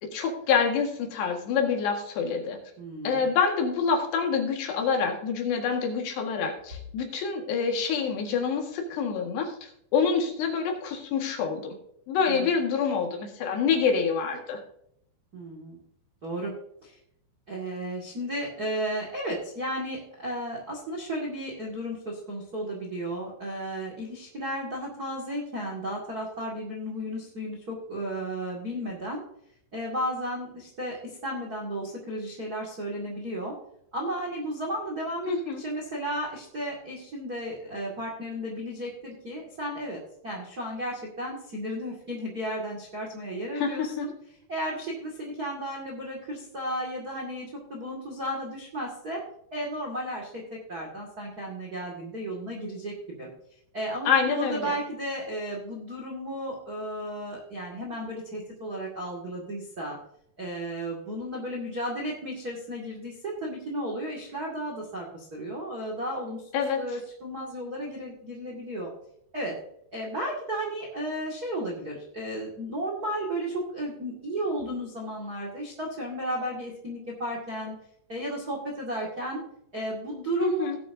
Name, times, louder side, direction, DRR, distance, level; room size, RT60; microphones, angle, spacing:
voice 1, 0.0-2.6 3.0-11.8 12.1-14.6 35.3-35.6 43.5-44.1 54.1-54.8 66.5-66.8 80.4-80.8, left 6 dB, 70° left, 2 dB, 3.9 m, -27 dB
voice 2, 2.8-3.2 12.3-12.5 15.3-15.8 16.2-16.5 16.8-16.9 17.5-29.2 29.7-33.5 33.9-40.0 40.2-44.1 44.5-49.2 49.5-50.4 50.7-53.3 53.7-60.0 60.4-68.9 69.3-69.5 69.9-77.7 78.1-79.4 79.7-80.7, right 1 dB, 35° right, -1 dB, 1.5 m, -34 dB
18.5 x 7.8 x 2.7 m, 0.73 s
omnidirectional pair, 5.1 m